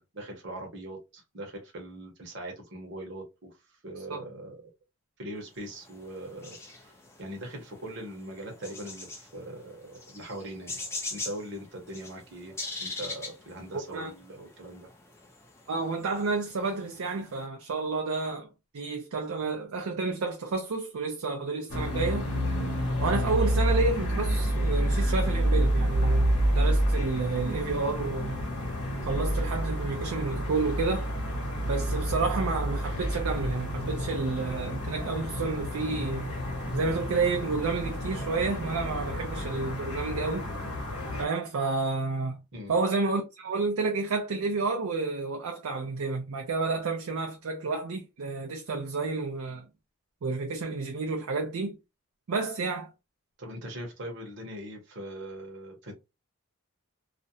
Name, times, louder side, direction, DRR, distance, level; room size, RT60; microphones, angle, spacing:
voice 1, 0.0-3.5 3.8-4.5 5.2-6.9 7.2-10.8 11.1-12.5 12.8-14.9 42.5-42.8 53.4-55.9, right 1 dB, 55° right, 0.8 m, -41 dB
sound 1, 5.6-17.4, left 3 dB, 10° left, 0.4 m, -43 dB
voice 2, 13.7-14.1 15.7-18.5 18.7-22.3 23.0-28.4 29.0-31.1 31.7-36.3 36.7-40.5 41.2-42.4 42.7-49.7 50.2-51.8 52.3-52.9, right 3 dB, 80° right, 0.5 m, -30 dB
sound 2, 21.7-41.3, equal, 90° left, 0.9 m, -29 dB
2.4 x 2.1 x 2.6 m
head